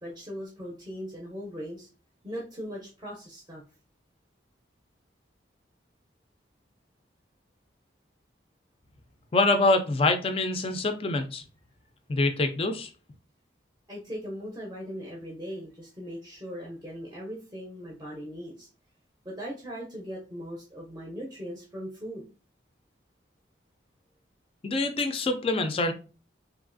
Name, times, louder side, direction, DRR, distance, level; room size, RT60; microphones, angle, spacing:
voice 1, 0.0-1.9 2.2-3.6 13.9-18.7 19.2-22.2, equal, 20° right, -3 dB, 0.6 m, -39 dB
voice 2, 9.3-11.4 12.1-12.9 24.6-25.9, left 2 dB, 30° left, 7 dB, 0.3 m, -25 dB
2.9 x 2.4 x 2.5 m, 0.34 s
head